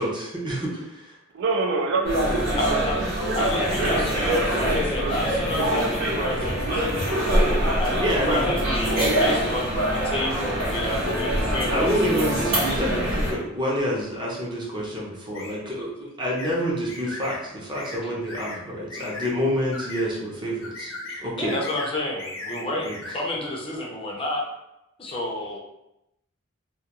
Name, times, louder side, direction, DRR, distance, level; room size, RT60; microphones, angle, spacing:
voice 1, 0.0-1.2 8.0-8.6 11.7-21.6 22.8-22.9, equal, 25° right, -4 dB, 0.6 m, -28 dB
voice 2, 1.3-3.5 3.8-4.5 5.0-5.2 5.5-6.4, right 3 dB, 60° right, 3 dB, 0.3 m, -28 dB
sound 1, 2.0-13.3, equal, 85° right, 0.9 m, -24 dB
voice 3, 2.6-6.9 7.8-11.9 12.1-12.3 21.1-24.5 25.0-25.6, left 1 dB, 25° left, -2 dB, 0.5 m, -30 dB
sound 2, 15.3-15.6 16.4-16.6 16.9-17.4 17.7-18.0 18.3-18.6 18.9-19.3 19.7-20.1 20.6-21.2 21.5-21.9 22.2-23.2, left 2 dB, 80° left, 0.7 m, -37 dB
2.3 x 2.2 x 2.8 m, 0.88 s
head